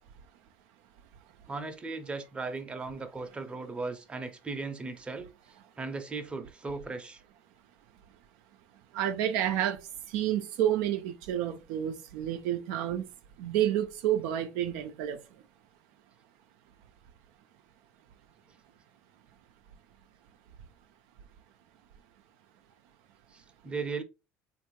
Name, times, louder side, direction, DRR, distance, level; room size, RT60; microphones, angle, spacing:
voice 1, 1.5-5.3 5.8-7.2 23.3-24.0, right 3 dB, 20° right, 0.6 m, -37 dB
voice 2, 8.9-13.0 13.4-15.4, right 11 dB, 80° right, 0.4 m, -30 dB
3.5 x 2.6 x 3.0 m
supercardioid pair, 100°, 6 cm